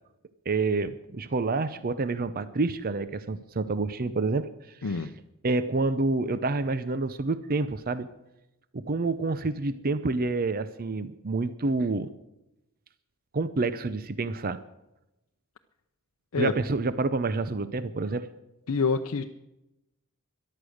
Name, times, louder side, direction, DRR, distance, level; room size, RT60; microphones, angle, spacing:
voice 1, 0.5-4.8 5.4-8.1 8.7-12.1 13.3-14.6 16.4-18.3, right 3 dB, 45° right, 14 dB, 0.6 m, -28 dB
voice 2, 4.8-5.1 16.3-16.5 18.7-19.2, left 5 dB, 75° left, 5 dB, 0.6 m, -26 dB
13.5 x 11.5 x 6.4 m, 0.92 s
head